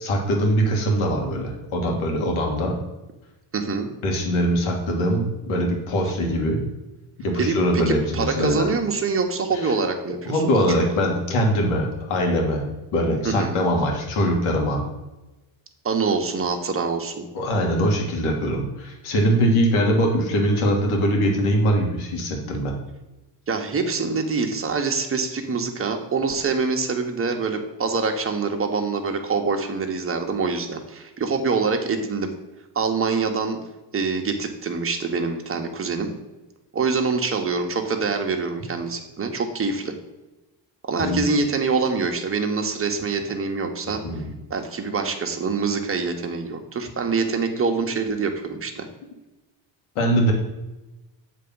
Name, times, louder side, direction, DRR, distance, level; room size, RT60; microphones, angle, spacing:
voice 1, 0.0-2.8 4.0-6.6 7.2-8.7 9.6-9.7 10.3-14.8 17.3-22.7 41.0-41.2 44.0-44.3 50.0-50.3, equal, 75° left, 1 dB, 2.0 m, -22 dB
voice 2, 3.5-3.9 7.3-10.6 13.2-13.6 15.8-17.2 23.5-32.3 32.7-33.6 33.9-36.1 36.7-39.9 40.8-44.0 44.5-48.9, right 4 dB, 25° right, 4 dB, 1.1 m, -25 dB
7.4 x 3.5 x 5.5 m, 1.0 s
supercardioid pair, 80°, 50 cm